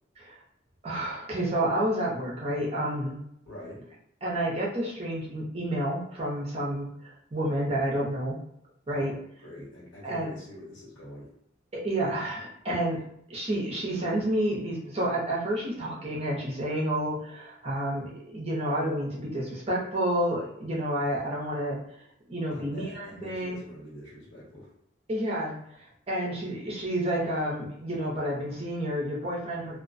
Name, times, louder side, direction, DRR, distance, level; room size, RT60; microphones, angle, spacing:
voice 1, 0.8-3.2 4.2-8.4 8.9-9.1 10.0-10.3 11.7-13.0 13.3-21.8 22.3-23.6 25.1-25.5 26.1-29.8, right 1 dB, 30° right, -4 dB, 0.6 m, -30 dB
voice 2, 3.4-3.8 8.9-11.3 22.5-24.7, equal, 75° left, -6 dB, 1.3 m, -45 dB
2.3 x 2.1 x 2.5 m, 0.73 s
head